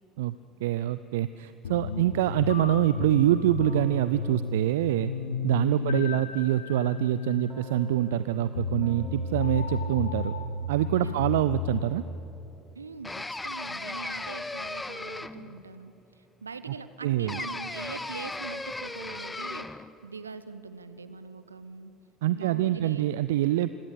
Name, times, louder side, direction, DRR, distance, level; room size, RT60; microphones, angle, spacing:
voice 1, 0.6-5.1 5.4-10.3 10.7-12.0 16.7-16.8 17.0-17.4 22.2-23.8, right 13 dB, 70° right, 15 dB, 0.4 m, -25 dB
sound 1, 1.6-12.0, left 5 dB, 80° left, 1.0 m, -33 dB
Keyboard (musical), 3.6-5.9 7.5-11.8, left 1 dB, 40° right, 7.1 m, -49 dB
voice 2, 5.8-6.3 11.0-11.4 12.7-15.9 16.4-21.9 22.3-23.1, right 4 dB, 85° right, 13 dB, 0.8 m, -42 dB
sound 2, 13.0-15.6 17.3-19.9, left 2 dB, 15° left, 0.9 m, -36 dB
25.0 x 17.0 x 8.4 m, 3.0 s
figure-of-eight pair, 60°, 0 cm